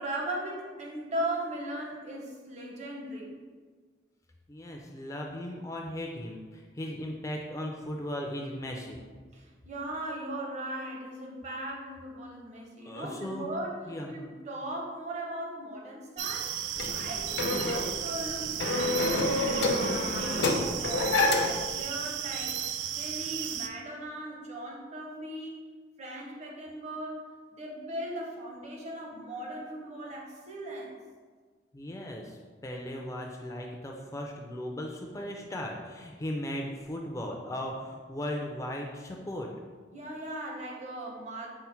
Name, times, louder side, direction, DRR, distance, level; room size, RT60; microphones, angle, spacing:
voice 1, 0.0-3.4 9.3-16.6 16.9-21.1 21.4-22.6 23.0-25.6 26.0-30.9 39.9-41.5, right 1 dB, 40° right, -2 dB, 0.7 m, -38 dB
voice 2, 4.5-9.0 12.9-13.5 13.9-14.1 31.7-39.5, left 1 dB, 20° left, 1 dB, 0.3 m, -37 dB
sound 1, 16.2-23.7, right 10 dB, 85° right, 0.3 m, -34 dB
sound 2, 16.8-21.7, left 2 dB, 75° left, 0.5 m, -28 dB
5.5 x 2.1 x 4.3 m, 1.5 s
head